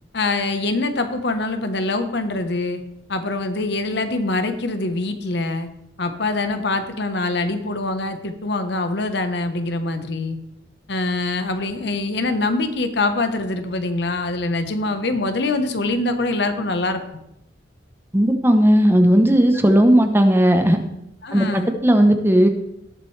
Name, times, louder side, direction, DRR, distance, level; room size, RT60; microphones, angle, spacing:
voice 1, 0.1-2.8 3.1-5.7 6.0-10.4 10.9-17.0 19.7-19.8 21.2-21.7, left 2 dB, 65° left, 8 dB, 1.1 m, -24 dB
voice 2, 18.1-20.8 21.3-22.5, equal, 10° right, 6 dB, 0.8 m, -15 dB
18.5 x 7.5 x 3.3 m, 0.82 s
head